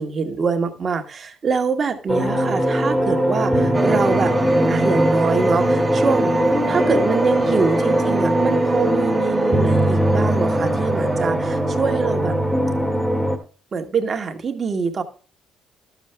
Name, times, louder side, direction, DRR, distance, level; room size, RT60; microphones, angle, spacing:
voice 1, 0.0-4.3 4.7-6.3 6.6-12.4 13.7-15.0, right 5 dB, 45° right, 1.5 m, -24 dB
sound 1, 2.1-13.4, right 1 dB, ahead, 1.6 m, -20 dB
sound 2, 3.7-13.4, right 2 dB, 20° right, 0.7 m, -28 dB
12.0 x 7.1 x 3.3 m
supercardioid pair, 70°, 0 cm